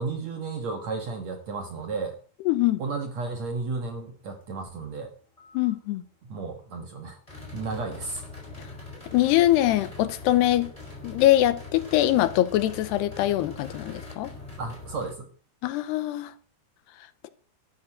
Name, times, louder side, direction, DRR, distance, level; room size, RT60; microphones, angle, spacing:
voice 1, 0.0-2.2 2.8-5.1 6.2-7.2 7.5-8.2 14.6-15.3, right 4 dB, 55° right, 2.0 m, -33 dB
voice 2, 2.5-2.8 5.5-6.0 9.1-10.7 11.0-14.3 15.6-16.3 17.2-17.3, left 14 dB, 80° left, 2.9 m, -23 dB
sound 1, 5.4-5.7 7.3-15.1, left 3 dB, 10° left, 5.0 m, -42 dB
12.5 x 9.7 x 7.2 m
omnidirectional pair, 4.9 m